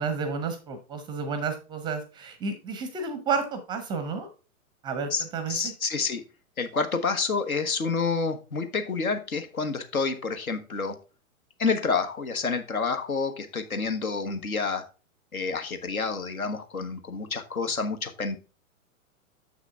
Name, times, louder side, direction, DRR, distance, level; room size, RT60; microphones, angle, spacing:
voice 1, 0.0-4.3 4.8-5.6, right 5 dB, 10° right, 9 dB, 0.5 m, -31 dB
voice 2, 5.1-6.2 6.6-10.9 11.6-14.8 15.3-18.4, left 4 dB, 80° left, 8 dB, 1.3 m, -28 dB
6.8 x 6.1 x 3.5 m, 0.34 s
figure-of-eight pair, 115°, 42 cm